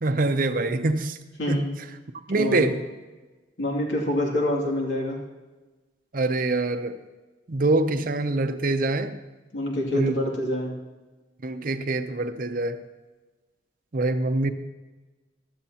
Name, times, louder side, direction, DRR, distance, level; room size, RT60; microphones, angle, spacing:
voice 1, 0.0-1.2 1.5-1.6 2.3-2.8 6.1-7.0 7.5-9.2 9.9-10.1 11.4-12.8 13.9-14.5, right 2 dB, 50° right, 9 dB, 0.6 m, -24 dB
voice 2, 1.4-1.7 2.3-2.7 3.6-5.2 9.5-10.7, left 1 dB, 80° left, -2 dB, 2.5 m, -26 dB
15.0 x 12.0 x 2.9 m, 1.2 s
head